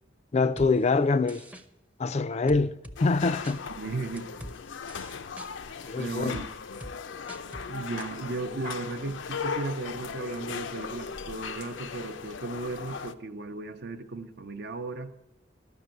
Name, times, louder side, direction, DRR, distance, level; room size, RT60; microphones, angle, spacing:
voice 1, 0.3-1.4 2.0-3.6 5.8-6.4, left 3 dB, 35° left, 0.4 m, -25 dB
sound 1, 0.6-0.7 1.3-1.6 2.5-3.0 3.4-3.6 4.2-4.6 4.9-5.5 6.3-6.5 6.8-6.9 7.3-7.7 8.0-8.1, equal, 10° right, 0.6 m, -42 dB
sound 2, 3.0-13.1, left 5 dB, 90° left, 0.6 m, -38 dB
voice 2, 3.8-4.3 5.9-6.5 7.7-15.1, right 3 dB, 60° right, 0.6 m, -35 dB
12.0 x 6.0 x 8.9 m
head